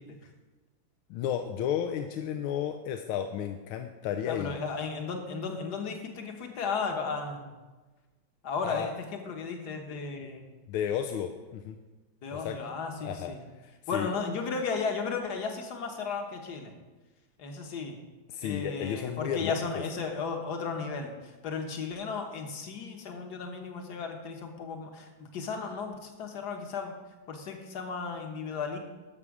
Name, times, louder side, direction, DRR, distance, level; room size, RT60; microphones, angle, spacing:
voice 1, 1.1-4.6 8.6-8.9 10.7-11.8 12.3-12.6 13.0-14.1 18.3-19.8, left 9 dB, 80° left, 5 dB, 1.4 m, -33 dB
voice 2, 4.3-7.6 8.4-10.5 12.2-13.4 13.9-16.7 17.4-18.0 18.4-26.9 27.3-28.8, left 5 dB, 55° left, 4 dB, 1.6 m, -35 dB
12.5 x 7.0 x 4.9 m, 1.2 s
omnidirectional pair, 2.3 m